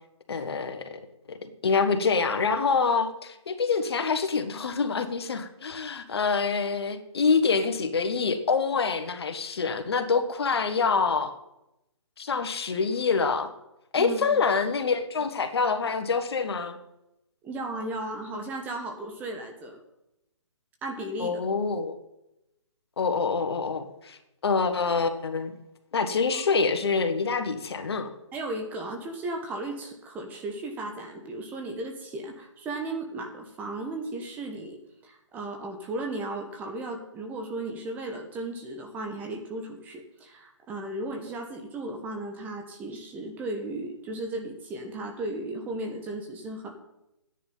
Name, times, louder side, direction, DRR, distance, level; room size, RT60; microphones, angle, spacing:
voice 1, 0.3-1.0 1.4-11.3 12.2-13.5 13.9-16.8 21.2-22.0 23.0-25.5 25.9-28.1, left 5 dB, 55° left, 8 dB, 1.5 m, -26 dB
voice 2, 14.0-14.4 17.4-19.8 20.8-21.4 26.3-26.4 28.3-46.7, right 2 dB, 10° right, 3 dB, 1.1 m, -35 dB
12.5 x 10.0 x 5.6 m, 0.88 s
hypercardioid pair, 155°, 16 cm